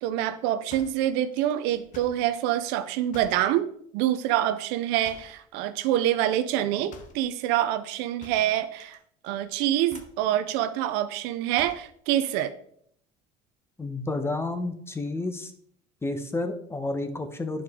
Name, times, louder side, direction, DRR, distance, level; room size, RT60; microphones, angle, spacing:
voice 1, 0.0-3.7 3.9-9.0 9.2-12.6, right 12 dB, 75° right, 12 dB, 0.6 m, -26 dB
sound 1, 0.7-2.3 3.1-3.5 5.0-5.5 6.9-7.3 8.2-9.0 9.2-9.5 9.9-10.3 11.6-11.9, left 5 dB, 45° left, 1.1 m, -49 dB
voice 2, 13.8-15.5 16.0-17.6, left 2 dB, 15° left, 8 dB, 0.9 m, -30 dB
9.5 x 5.0 x 3.6 m, 0.65 s
supercardioid pair, 115°, 18 cm